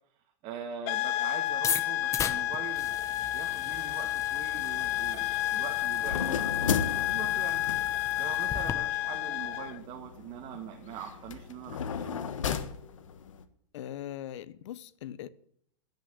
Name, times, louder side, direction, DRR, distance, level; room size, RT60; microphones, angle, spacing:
voice 1, 0.4-7.6 8.2-12.2, right 8 dB, 35° right, 2.0 m, -43 dB
sound 1, 0.9-9.8, left 15 dB, 40° left, 0.7 m, -31 dB
sound 2, 1.5-8.7, left 7 dB, 20° left, 0.9 m, -38 dB
sound 3, 4.6-13.4, left 7 dB, 90° left, 1.4 m, -36 dB
voice 2, 13.7-15.3, left 11 dB, 65° left, 0.9 m, -40 dB
15.5 x 6.6 x 8.2 m
hypercardioid pair, 140°, 16 cm